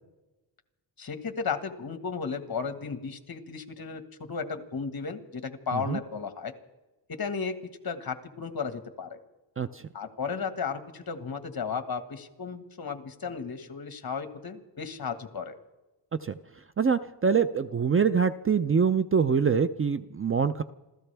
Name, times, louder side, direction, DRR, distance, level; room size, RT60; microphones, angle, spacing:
voice 1, 1.0-6.5 7.2-7.5 7.8-9.2 9.9-15.5, left 5 dB, 50° left, 8 dB, 1.6 m, -34 dB
voice 2, 16.8-20.6, right 6 dB, 30° right, 12 dB, 0.4 m, -25 dB
28.5 x 14.0 x 3.4 m, 1.1 s
wide cardioid pair, 105°, 47 cm